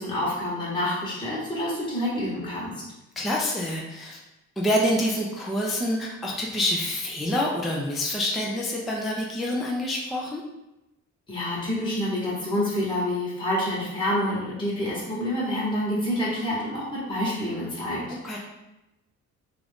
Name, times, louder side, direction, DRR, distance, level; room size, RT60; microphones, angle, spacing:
voice 1, 0.0-2.7 11.3-18.4, left 1 dB, 15° left, -8 dB, 1.0 m, -28 dB
voice 2, 3.2-4.2 4.6-10.4 18.2-18.4, left 1 dB, ahead, -3 dB, 0.3 m, -27 dB
2.5 x 2.4 x 3.4 m, 0.95 s
cardioid pair, 115°, 30 cm